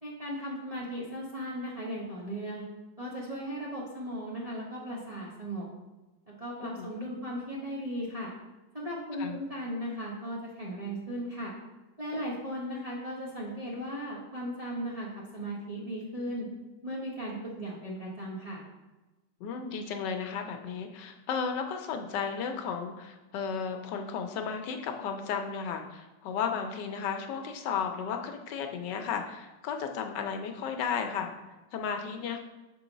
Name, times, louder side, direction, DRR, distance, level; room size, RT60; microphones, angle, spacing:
voice 1, 0.0-2.6 3.0-5.7 6.4-8.3 8.7-11.5 12.0-15.1 15.3-16.5 16.8-18.6, equal, 25° right, -6 dB, 0.9 m, -37 dB
voice 2, 19.4-31.3 31.7-32.4, left 6 dB, 80° left, 5 dB, 1.3 m, -34 dB
6.5 x 3.8 x 4.0 m, 1.1 s
omnidirectional pair, 1.9 m